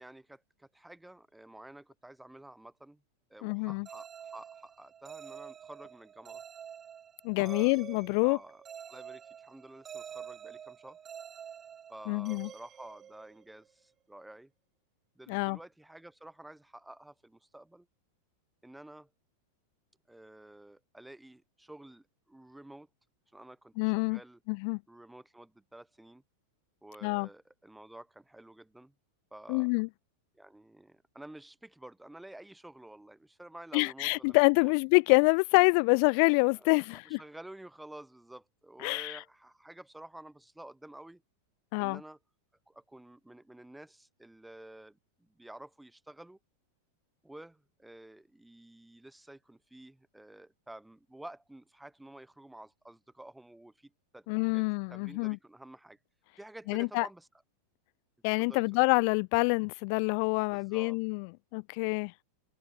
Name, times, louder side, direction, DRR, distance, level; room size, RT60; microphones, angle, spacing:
voice 1, 0.0-3.0 3.3-6.4 7.4-7.8 8.2-8.6 8.9-11.0 11.9-14.5 15.2-17.9 18.6-19.1 20.1-22.9 23.3-24.4 24.9-26.2 26.8-28.9 29.3-29.7 30.3-34.7 36.5-41.2 41.8-42.2 42.7-46.4 47.2-54.3 54.5-56.0 56.4-57.3 58.4-58.6 60.5-61.0, right 1 dB, 5° right, 2.0 m, -51 dB
voice 2, 3.4-3.9 7.2-8.4 12.1-12.5 15.3-15.6 23.8-24.2 24.5-24.8 27.0-27.3 29.5-29.9 33.7-37.2 38.8-39.2 41.7-42.0 54.3-55.4 56.7-57.1 58.2-62.1, left 38 dB, 45° left, 0.5 m, -26 dB
sound 1, 3.9-13.7, right 8 dB, 25° right, 6.4 m, -48 dB
open air
figure-of-eight pair, 90°, 0 cm